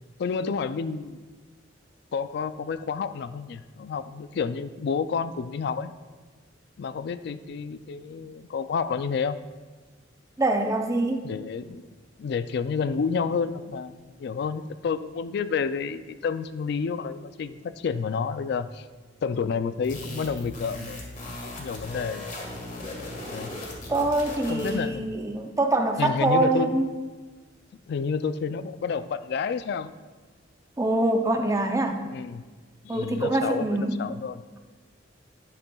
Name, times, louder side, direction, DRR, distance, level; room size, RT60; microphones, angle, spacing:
voice 1, 0.2-1.2 2.1-5.9 6.8-9.4 11.2-11.9 12.2-18.9 19.2-22.3 23.3-23.6 24.5-25.1 26.0-26.7 27.9-29.9 32.0-32.4 32.8-34.4, left 5 dB, 60° left, 12 dB, 0.3 m, -30 dB
voice 2, 10.4-11.3 23.9-26.9 30.8-32.0 32.9-34.0, right 2 dB, 15° right, 4 dB, 0.5 m, -24 dB
sound 1, 19.8-24.9, left 1 dB, 45° left, 1.5 m, -38 dB
11.0 x 7.2 x 2.3 m, 1.4 s
head